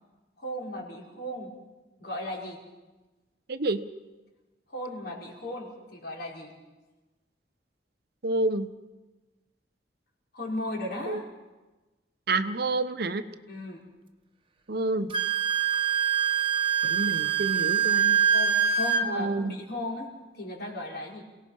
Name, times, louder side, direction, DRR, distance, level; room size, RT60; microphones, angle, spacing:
voice 1, 0.4-1.5 2.0-2.6 4.7-6.5 10.3-11.3 13.5-13.8 18.3-20.1 20.3-21.2, left 1 dB, 60° left, -1 dB, 4.7 m, -36 dB
voice 2, 3.5-3.8 8.2-8.7 11.1-11.2 12.3-13.2 14.7-15.1 16.8-18.2 19.0-19.6, right 2 dB, 60° right, 11 dB, 1.0 m, -28 dB
Wind instrument woodwind instrument, 15.1-19.0, right 8 dB, 30° right, 1.1 m, -24 dB
28.0 x 18.0 x 5.6 m, 1.1 s
head